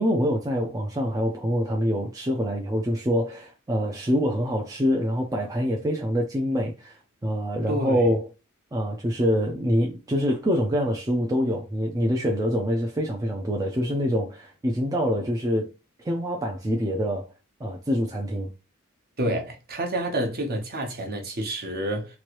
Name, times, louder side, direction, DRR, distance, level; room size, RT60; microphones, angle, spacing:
voice 1, 0.0-7.0 7.2-8.3 8.7-15.7 16.0-17.3 17.6-18.5, equal, 15° right, 0.4 m, -25 dB
voice 2, 7.7-8.1 19.2-22.2, right 1 dB, 45° right, 0.9 m, -28 dB
3.1 x 2.5 x 2.9 m
head